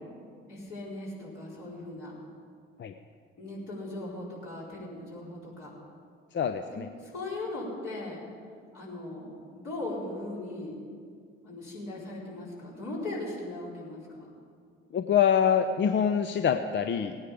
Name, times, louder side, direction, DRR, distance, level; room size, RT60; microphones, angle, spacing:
voice 1, 0.5-2.1 3.4-5.7 6.7-8.2 8.7-10.8 11.4-14.3, left 2 dB, 55° left, -6 dB, 4.5 m, -38 dB
voice 2, 6.3-6.9 14.9-17.2, left 8 dB, 35° left, 7 dB, 0.6 m, -25 dB
18.0 x 9.7 x 5.1 m, 2.2 s
figure-of-eight pair, 45°, 31 cm